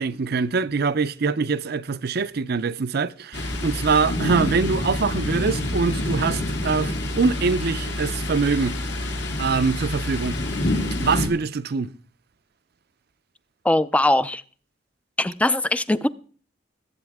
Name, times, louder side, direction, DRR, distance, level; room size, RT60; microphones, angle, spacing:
voice 1, 0.0-8.8 9.4-10.4 11.0-11.9, right 4 dB, 55° right, 0.5 m, -24 dB
Thunder, 3.3-11.3, left 1 dB, 65° left, 2.2 m, -27 dB
voice 2, 13.6-14.4 15.2-16.1, left 1 dB, 5° left, 0.4 m, -21 dB
20.0 x 8.1 x 3.5 m
head